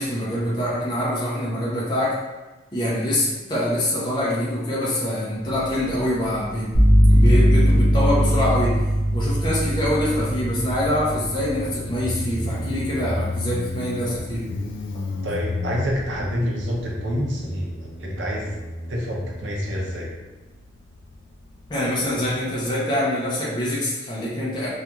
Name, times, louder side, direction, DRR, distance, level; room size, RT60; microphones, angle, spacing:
voice 1, 0.0-2.2 2.7-6.8 7.1-8.8 9.1-14.5 21.7-24.7, left 1 dB, 25° left, -7 dB, 0.5 m, -25 dB
Motorcycle, 5.4-22.6, left 2 dB, 80° left, 0.3 m, -35 dB
sound 1, 6.7-14.5, equal, 45° left, 1.0 m, -21 dB
voice 2, 15.2-18.5 18.9-20.1, equal, 80° right, -2 dB, 0.6 m, -27 dB
2.4 x 2.3 x 2.9 m, 1.1 s
head